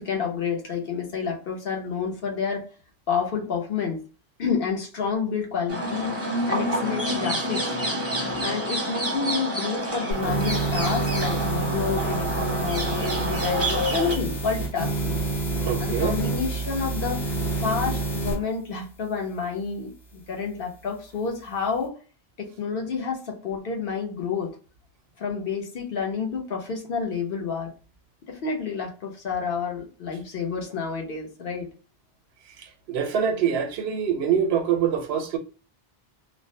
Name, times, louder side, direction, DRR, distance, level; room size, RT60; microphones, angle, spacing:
voice 1, 0.0-2.7 3.1-4.0 4.4-6.2 6.5-7.7 8.4-15.2 15.8-17.3 17.6-22.0 22.4-24.6 25.2-27.7 28.3-31.7, left 6 dB, 65° left, 1.0 m, -29 dB
sound 1, 5.7-14.2, right 1 dB, 15° right, 0.6 m, -28 dB
sound 2, 10.1-18.4, right 3 dB, 85° left, 1.1 m, -28 dB
voice 2, 15.6-16.2 32.6-35.4, right 8 dB, 90° right, 0.9 m, -25 dB
2.5 x 2.1 x 2.6 m
omnidirectional pair, 1.0 m